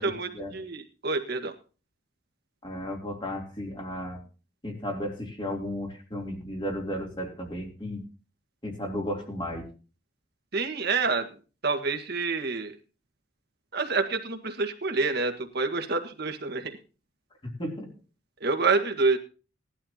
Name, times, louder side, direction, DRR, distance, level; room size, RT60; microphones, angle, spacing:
voice 1, 0.0-1.5 10.5-11.3 11.6-12.7 13.7-16.8 18.4-19.2, right 4 dB, 55° right, 6 dB, 1.7 m, -27 dB
voice 2, 2.6-4.2 4.6-8.0 8.6-9.7 17.6-17.9, equal, 25° left, 1 dB, 3.0 m, -34 dB
18.5 x 12.0 x 2.9 m, 0.36 s
head